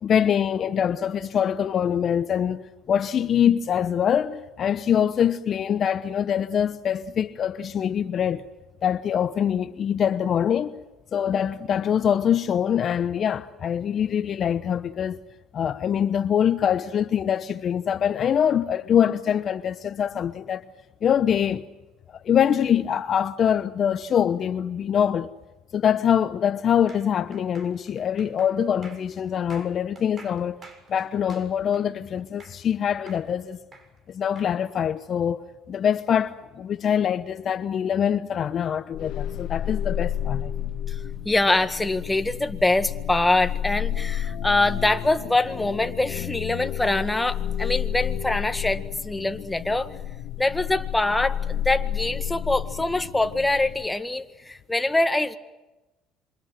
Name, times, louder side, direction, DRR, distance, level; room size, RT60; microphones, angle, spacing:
voice 1, 0.0-8.5 8.8-10.8 11.1-15.2 15.5-20.7 21.0-21.6 22.2-25.3 25.7-30.6 30.9-33.6 34.1-40.5, left 8 dB, 50° left, 1.0 m, -24 dB
sound 1, 26.9-32.7 33.1-34.5, right 3 dB, 40° right, 6.7 m, -49 dB
sound 2, 38.9-53.9, left 10 dB, 70° left, 1.8 m, -31 dB
voice 2, 40.9-49.9 50.4-55.4, left 2 dB, 10° left, 1.8 m, -24 dB
27.5 x 25.0 x 7.8 m
hypercardioid pair, 75°, 0 cm